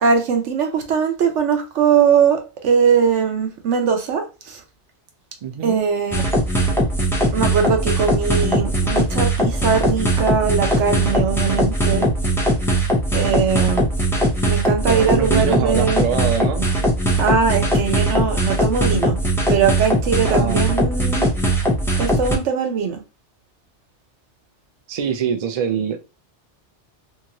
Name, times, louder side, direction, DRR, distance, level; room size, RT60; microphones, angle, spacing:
voice 1, 0.0-4.6 5.6-6.2 7.3-12.1 13.1-13.9 14.5-16.1 17.2-19.2 19.5-21.3 22.0-23.0, right 6 dB, 80° right, 1.0 m, -20 dB
voice 2, 5.4-5.8 14.8-16.7 20.2-20.6 24.9-26.0, right 7 dB, 65° right, 0.4 m, -24 dB
sound 1, 6.1-22.4, right 1 dB, 5° left, 0.4 m, -20 dB
2.8 x 2.6 x 2.8 m
omnidirectional pair, 1.2 m